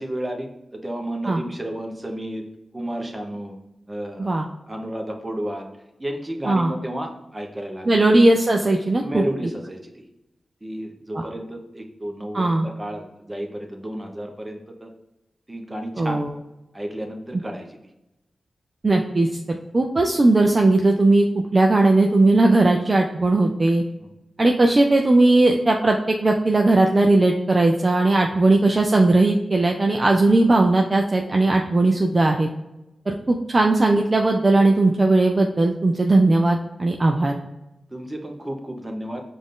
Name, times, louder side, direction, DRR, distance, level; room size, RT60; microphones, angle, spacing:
voice 1, 0.0-2.4 2.7-3.6 3.9-4.3 4.7-5.7 6.0-8.0 9.0-9.9 10.6-14.9 15.5-16.2 16.7-17.8 24.0-24.1 37.9-39.2, right 1 dB, 20° right, 3 dB, 0.9 m, -32 dB
voice 2, 7.9-9.2 11.1-11.2 12.3-12.7 16.0-16.3 18.8-21.3 21.5-23.8 24.4-32.5 33.1-37.4, right 2 dB, 40° right, 2 dB, 0.5 m, -18 dB
5.0 x 2.6 x 3.7 m, 0.94 s
cardioid pair, 55°, 0 cm